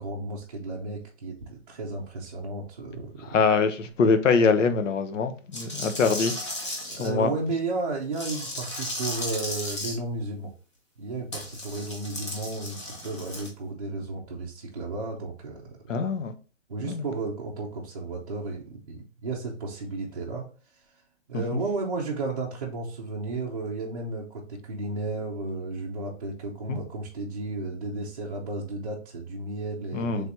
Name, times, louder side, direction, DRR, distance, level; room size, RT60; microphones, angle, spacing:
voice 1, 0.0-3.4 6.8-10.5 11.0-12.8 13.0-15.8 16.7-20.4 21.3-30.3, right 3 dB, 30° right, 0.5 m, -33 dB
voice 2, 3.3-6.3 7.0-7.3 15.9-16.3 16.8-17.0 21.3-21.4 26.7-26.8 29.9-30.3, left 5 dB, 80° left, 0.8 m, -23 dB
sound 1, 5.5-7.1 8.1-9.9 11.3-13.5, left 1 dB, 25° left, 0.6 m, -35 dB
3.3 x 2.8 x 4.5 m
hypercardioid pair, 175°, 37 cm